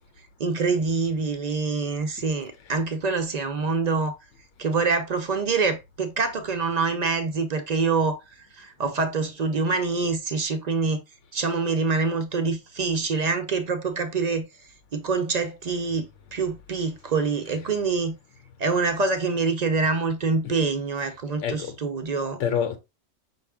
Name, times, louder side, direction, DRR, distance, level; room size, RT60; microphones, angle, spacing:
voice 1, 0.4-4.1 4.6-8.2 8.5-11.0 11.3-14.5 14.9-18.2 18.6-22.4, right 4 dB, 50° right, 0.5 m, -25 dB
voice 2, 21.0-21.8 22.4-22.8, left 8 dB, 85° left, 1.0 m, -29 dB
5.4 x 2.3 x 3.4 m
omnidirectional pair, 1.2 m